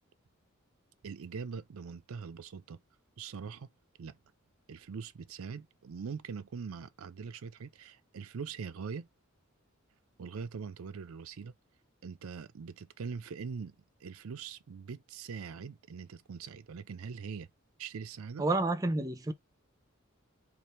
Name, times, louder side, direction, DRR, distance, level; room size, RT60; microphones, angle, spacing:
voice 1, 1.0-2.8 3.2-3.7 4.0-4.2 4.7-9.1 10.2-11.5 12.0-13.8 14.0-17.5 17.8-18.4, right 5 dB, 80° right, 0.5 m, -42 dB
voice 2, 18.4-19.3, right 2 dB, 15° right, 0.5 m, -29 dB
3.2 x 2.5 x 4.2 m
head